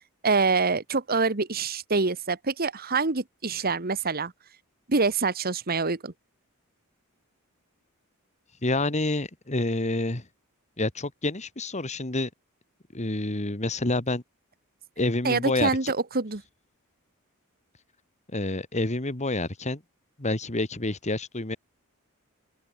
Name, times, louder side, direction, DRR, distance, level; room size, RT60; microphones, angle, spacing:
voice 1, 0.2-4.3 4.9-6.1 15.2-16.4, right 4 dB, 45° right, 1.5 m, -25 dB
voice 2, 8.6-10.3 10.8-12.3 12.9-14.2 15.0-15.9 18.3-19.8 20.2-21.6, left 2 dB, 30° left, 2.0 m, -28 dB
open air
head